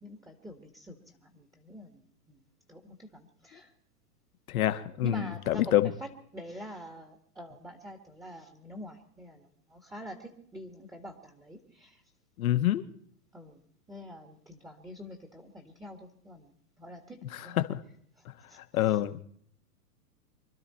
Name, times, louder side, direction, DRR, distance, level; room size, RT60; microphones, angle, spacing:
voice 1, 0.0-3.7 5.0-12.0 13.3-13.6 13.9-17.6 18.2-18.6 18.8-19.0, equal, 5° right, 5 dB, 1.8 m, -46 dB
voice 2, 4.5-5.9 12.4-12.8 17.7-17.8 18.6-19.2, left 13 dB, 65° left, 9 dB, 1.5 m, -27 dB
25.5 x 12.5 x 4.3 m, 0.62 s
hypercardioid pair, 125°, 46 cm